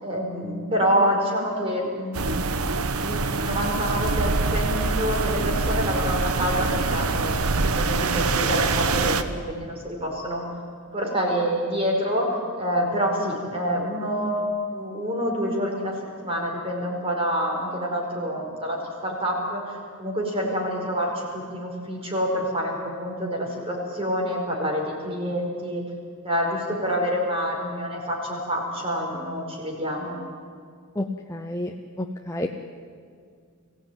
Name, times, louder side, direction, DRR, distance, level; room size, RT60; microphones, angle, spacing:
voice 1, 0.0-2.7 3.0-10.4 10.9-12.3 12.6-15.9 16.2-25.8 26.2-30.2, equal, 25° right, 0 dB, 4.9 m, -27 dB
sound 1, 2.1-9.2, right 3 dB, 70° right, 1.1 m, -24 dB
voice 2, 31.3-31.7 32.0-32.5, left 1 dB, 15° left, 2 dB, 0.8 m, -29 dB
22.5 x 16.0 x 9.2 m, 2.1 s
head